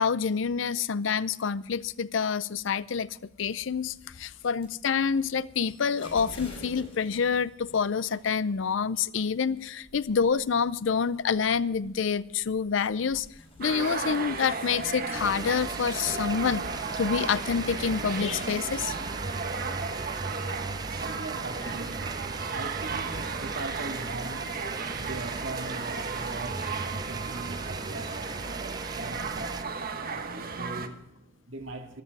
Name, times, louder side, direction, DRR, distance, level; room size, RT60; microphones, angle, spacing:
voice 1, 0.0-13.3 13.6-16.6 17.0-18.9, left 6 dB, 70° left, 0.5 m, -27 dB
sound 1, 3.7-19.1, left 1 dB, 30° left, 4.7 m, -52 dB
sound 2, 13.6-30.9, right 4 dB, 50° right, 1.2 m, -35 dB
sound 3, 15.1-29.6, right 3 dB, 20° right, 0.5 m, -38 dB
voice 2, 19.4-32.0, right 2 dB, 70° right, 2.3 m, -42 dB
13.5 x 13.0 x 4.7 m
head